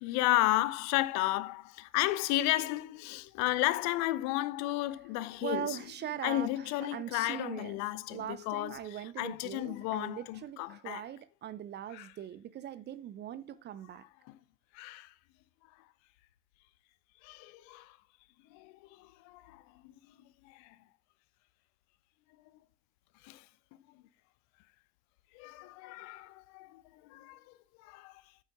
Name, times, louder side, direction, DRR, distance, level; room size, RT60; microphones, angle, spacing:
voice 1, 0.0-5.8 6.2-8.8 9.2-11.0 11.9-12.1 14.7-15.1 17.2-18.0 18.5-19.6 20.4-20.8 23.2-23.4 25.3-27.4 27.8-28.2, left 17 dB, 45° left, 0.6 m, -33 dB
voice 2, 5.4-7.8 8.1-14.0, right 10 dB, 25° right, 0.6 m, -41 dB
8.9 x 8.0 x 3.6 m
figure-of-eight pair, 70°, 40 cm